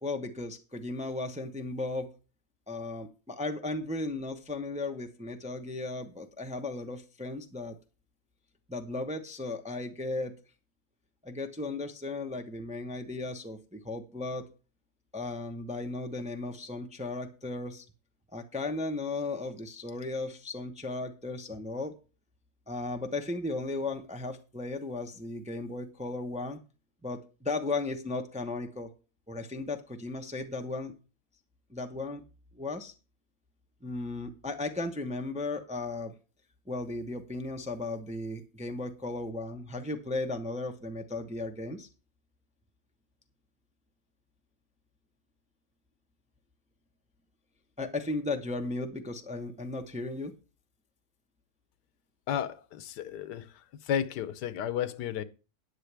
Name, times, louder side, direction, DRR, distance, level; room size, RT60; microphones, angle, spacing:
voice 1, 0.0-2.1 2.7-7.8 8.7-10.3 11.2-14.4 15.1-17.8 18.3-21.9 22.7-26.6 27.0-28.9 29.3-30.9 31.7-32.2 32.5-32.9 33.8-36.1 36.7-41.9 47.8-50.3, left 2 dB, 5° right, 0.6 m, -35 dB
voice 2, 52.3-53.5 53.9-55.2, left 9 dB, 85° left, 1.4 m, -32 dB
13.0 x 9.6 x 3.4 m
omnidirectional pair, 1.7 m